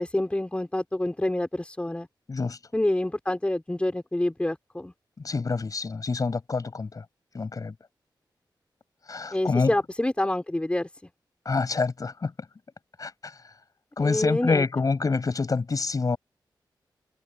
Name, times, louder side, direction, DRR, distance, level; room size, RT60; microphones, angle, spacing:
voice 1, 0.0-2.1 2.7-4.9 9.3-10.9 14.0-14.7, left 1 dB, 15° left, 5.1 m, -27 dB
voice 2, 5.2-7.0 7.3-7.7 9.1-9.7 11.4-12.3 13.0-13.3 14.0-16.2, left 4 dB, 45° left, 7.8 m, -27 dB
wide cardioid pair, 100°, 8 cm